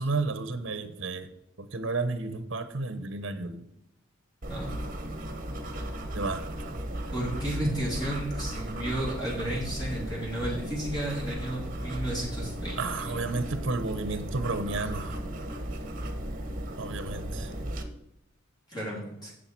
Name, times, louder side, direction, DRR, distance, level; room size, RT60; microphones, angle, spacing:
voice 1, 0.0-1.3 1.6-3.6 6.1-6.4 12.8-15.2 16.8-17.5, right 3 dB, 60° right, 11 dB, 0.8 m, -32 dB
sound 1, 4.4-17.8, right 1 dB, 40° right, 1.2 m, -36 dB
voice 2, 7.1-13.2 18.7-19.3, right 1 dB, 20° left, -4 dB, 3.1 m, -33 dB
10.0 x 7.7 x 4.6 m, 0.80 s
head